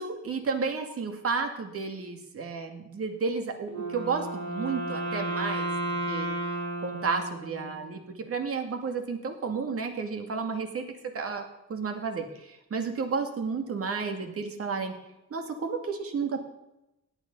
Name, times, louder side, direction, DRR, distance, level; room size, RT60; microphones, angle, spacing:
voice 1, 0.0-6.3 6.8-10.8 11.1-11.4 11.7-14.9 15.3-16.4, right 5 dB, 50° right, 5 dB, 2.4 m, -32 dB
Wind instrument woodwind instrument, 3.7-7.9, right 2 dB, 70° right, 4.5 m, -33 dB
17.0 x 9.9 x 5.4 m, 0.91 s
cardioid pair, 130°, 30 cm